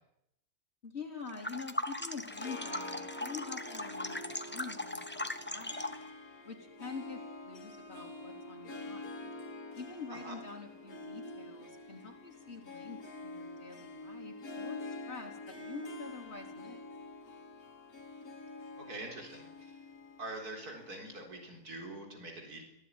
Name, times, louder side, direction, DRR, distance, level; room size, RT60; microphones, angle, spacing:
voice 1, 0.8-6.0 6.4-9.3 9.7-16.8, left 5 dB, 45° left, 2 dB, 4.0 m, -46 dB
sound 1, 1.3-6.1, left 1 dB, 10° left, 1.1 m, -39 dB
Harp, 2.1-21.5, left 2 dB, 75° left, 2.6 m, -47 dB
voice 2, 18.8-19.5 20.2-22.6, right 2 dB, 85° right, 2 dB, 4.6 m, -44 dB
24.5 x 17.0 x 9.8 m, 0.84 s
omnidirectional pair, 1.6 m